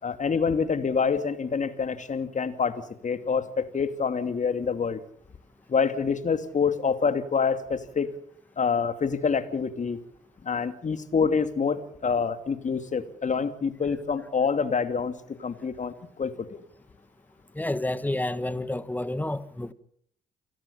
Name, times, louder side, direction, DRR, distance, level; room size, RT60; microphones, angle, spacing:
voice 1, 0.0-5.0 5.7-8.1 8.6-10.0 10.4-16.6, left 5 dB, 40° left, 2.6 m, -27 dB
voice 2, 17.5-19.7, left 1 dB, 10° left, 1.7 m, -30 dB
29.0 x 16.5 x 7.1 m
hypercardioid pair, 45°, 19 cm